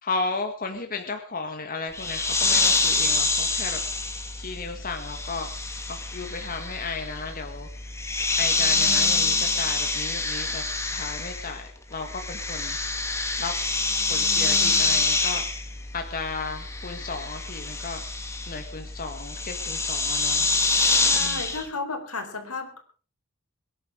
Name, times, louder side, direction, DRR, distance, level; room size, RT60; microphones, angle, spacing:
voice 1, 0.0-3.8 4.4-5.5 5.9-7.7 8.3-12.8 13.4-13.5 14.1-15.4 15.9-18.0 18.5-20.5 21.2-21.4, left 4 dB, 40° left, 5 dB, 1.8 m, -34 dB
sound 1, 1.9-11.7 11.9-21.6, left 3 dB, 15° left, 2.3 m, -26 dB
voice 2, 21.0-22.8, left 3 dB, 80° left, 5 dB, 4.5 m, -33 dB
22.5 x 11.0 x 5.0 m, 0.39 s
head